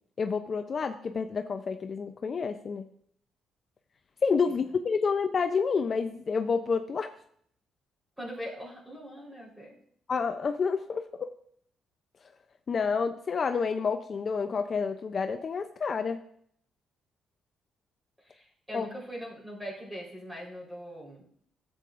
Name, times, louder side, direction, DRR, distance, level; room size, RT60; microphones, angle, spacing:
voice 1, 0.2-2.9 4.2-7.1 10.1-11.0 12.7-16.2 18.7-18.9, left 5 dB, 45° left, 7 dB, 0.5 m, -29 dB
voice 2, 8.2-9.8 18.2-21.3, equal, 5° right, -3 dB, 3.9 m, -41 dB
13.0 x 8.4 x 2.5 m, 0.65 s
cardioid pair, 90°, 0 cm